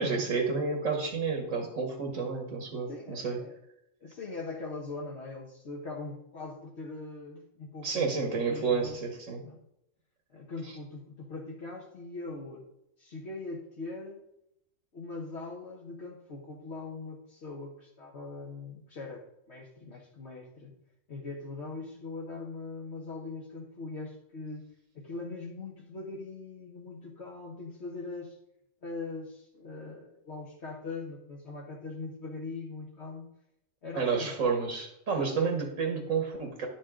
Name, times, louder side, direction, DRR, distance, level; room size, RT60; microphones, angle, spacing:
voice 1, 0.0-3.4 7.8-9.4 34.0-36.7, right 5 dB, 85° right, 2 dB, 1.9 m, -30 dB
voice 2, 2.9-3.5 4.0-9.0 9.4-9.6 10.3-12.7 13.0-14.2 14.9-20.8 21.1-28.4 28.8-33.3 33.8-34.4, left 3 dB, 60° left, -3 dB, 1.6 m, -41 dB
10.5 x 7.2 x 3.8 m, 0.82 s
omnidirectional pair, 1.3 m